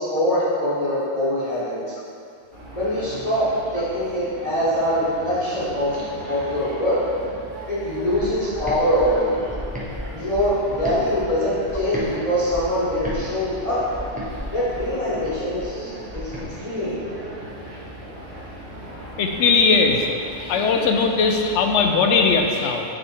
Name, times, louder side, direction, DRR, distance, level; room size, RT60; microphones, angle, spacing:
voice 1, 0.0-1.8 2.7-6.0 6.3-7.0 7.7-9.5 10.1-13.8 14.5-16.3 16.6-17.1, equal, 30° left, -10 dB, 1.1 m, -23 dB
sound 1, 2.5-22.4, right 1 dB, 45° right, 1.4 m, -38 dB
sound 2, 8.1-12.1 12.5-16.5, left 1 dB, 10° right, 0.6 m, -34 dB
voice 2, 19.2-20.1 20.4-22.8, left 4 dB, 80° left, 3 dB, 0.9 m, -19 dB
6.4 x 3.4 x 4.5 m, 2.4 s
omnidirectional pair, 1.2 m